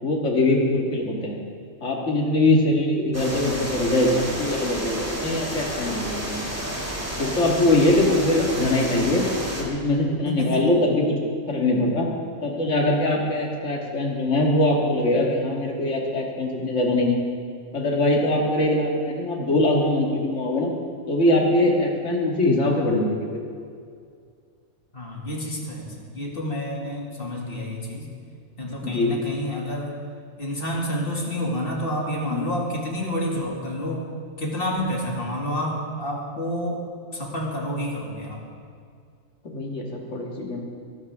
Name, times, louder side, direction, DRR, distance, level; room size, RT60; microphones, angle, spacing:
voice 1, 0.0-1.4 1.8-6.4 7.2-9.3 9.6-11.2 11.5-12.1 12.4-17.2 17.7-20.7 21.1-23.4 28.8-29.2 32.3-32.5 39.4-40.6, left 1 dB, 55° left, 0 dB, 2.3 m, -22 dB
sound 1, 3.1-9.6, equal, 10° right, 2.4 m, -31 dB
voice 2, 10.2-10.6 24.9-28.1 28.6-30.0 30.4-34.1 34.4-36.8 37.1-38.5, equal, 40° left, -1 dB, 2.5 m, -29 dB
22.5 x 13.0 x 3.6 m, 2.2 s
omnidirectional pair, 1.5 m